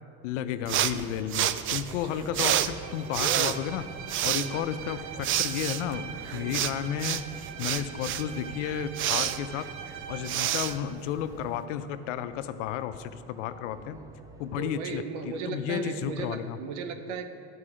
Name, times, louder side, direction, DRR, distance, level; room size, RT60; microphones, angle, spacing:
voice 1, 0.2-3.9 4.2-7.3 7.6-9.7 10.1-14.0 14.4-16.6, left 9 dB, 90° left, 12 dB, 0.6 m, -33 dB
sound 1, 0.6-11.6, right 12 dB, 35° right, 0.4 m, -30 dB
sound 2, 1.6-14.8, right 2 dB, 10° right, 0.7 m, -52 dB
voice 2, 2.1-2.5 4.2-4.6 6.3-6.5 9.3-9.4 14.6-17.2, right 5 dB, 80° right, 7 dB, 1.0 m, -37 dB
Bowed string instrument, 2.2-10.9, right 8 dB, 55° right, 0.9 m, -43 dB
12.0 x 4.7 x 4.9 m, 2.3 s
supercardioid pair, 100°, 36 cm